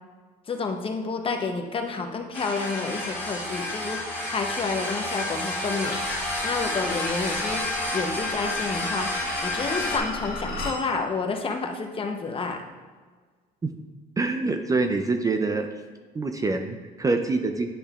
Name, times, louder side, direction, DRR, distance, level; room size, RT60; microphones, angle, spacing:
voice 1, 0.5-6.0 6.4-7.7 7.9-9.1 9.4-12.6, left 4 dB, 35° left, 4 dB, 0.8 m, -29 dB
sound 1, 2.3-10.0, left 1 dB, 15° left, 2.1 m, -30 dB
sound 2, 5.8-10.8, left 3 dB, 65° left, 1.3 m, -36 dB
voice 2, 14.2-15.7 16.1-17.7, right 3 dB, 20° right, 5 dB, 0.4 m, -25 dB
10.0 x 5.4 x 2.4 m, 1.5 s
cardioid pair, 110°, 17 cm